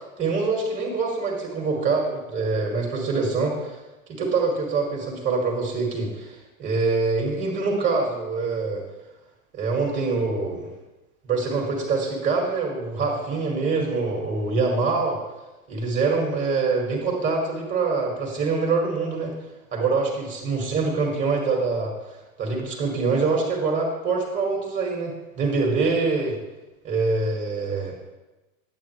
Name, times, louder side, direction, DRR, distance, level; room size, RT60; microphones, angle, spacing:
voice 1, 0.2-3.7 4.2-6.3 6.6-8.8 9.5-10.7 11.2-15.2 15.7-19.3 19.7-21.9 22.4-26.4 26.8-27.9, right 4 dB, 25° right, -1 dB, 2.0 m, -24 dB
9.0 x 8.4 x 3.2 m, 1.0 s
hypercardioid pair, 105°, 42 cm